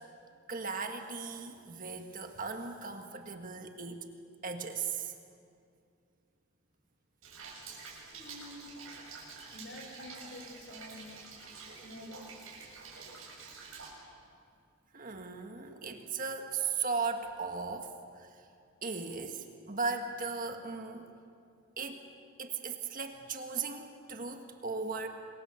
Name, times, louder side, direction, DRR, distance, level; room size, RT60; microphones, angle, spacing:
voice 1, 0.5-4.0 4.4-5.1 14.9-18.3 18.8-21.1 21.8-22.0 22.4-25.1, right 4 dB, 40° right, 5 dB, 1.6 m, -37 dB
Rain, 7.2-13.9, right 4 dB, 70° right, 7.1 m, -48 dB
voice 2, 8.1-8.7 9.2-11.1 11.8-12.3 15.6-15.7, left 1 dB, 60° left, 1 dB, 5.9 m, -49 dB
26.5 x 23.0 x 7.0 m, 2.4 s
head